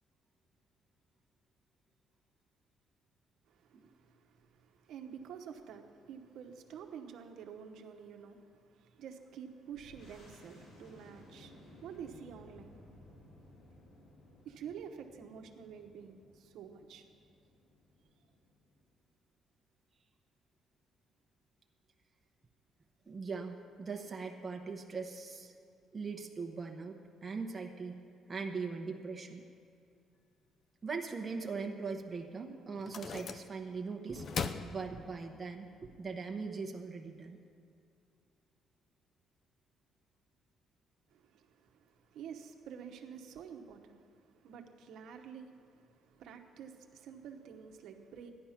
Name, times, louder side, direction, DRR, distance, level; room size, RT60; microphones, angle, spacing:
voice 1, 3.5-13.0 14.4-17.1 41.1-48.3, right 7 dB, 70° right, 4 dB, 1.0 m, -49 dB
sound 1, 9.7-18.9, left 1 dB, 80° left, 2.8 m, -58 dB
voice 2, 23.1-25.5 25.9-28.0 28.3-29.4 30.8-34.2 34.6-37.4, right 4 dB, 20° right, 2 dB, 0.9 m, -40 dB
sound 2, 32.0-32.1 32.7-33.8 34.1-35.5, left 5 dB, 40° left, 0.5 m, -40 dB
14.0 x 10.5 x 5.8 m, 2.5 s
cardioid pair, 150°, 0 cm